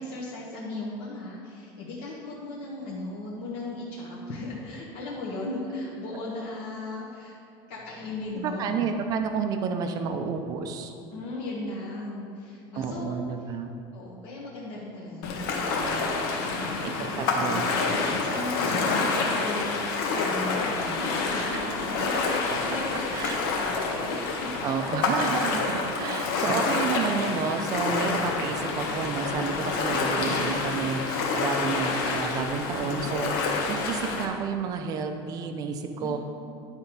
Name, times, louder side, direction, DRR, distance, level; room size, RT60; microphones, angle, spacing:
voice 1, 0.0-7.4 7.7-8.9 11.1-13.2 13.9-24.6 36.0-36.2, left 2 dB, 50° left, -5 dB, 1.2 m, -37 dB
voice 2, 8.4-10.9 12.7-13.7 16.8-17.7 22.5-22.6 22.9-23.4 24.6-36.2, right 5 dB, 30° right, 6 dB, 0.6 m, -30 dB
Ocean, 15.2-34.3, left 3 dB, 65° left, 1.3 m, -28 dB
10.5 x 4.5 x 5.4 m, 2.5 s
cardioid pair, 170°, 12 cm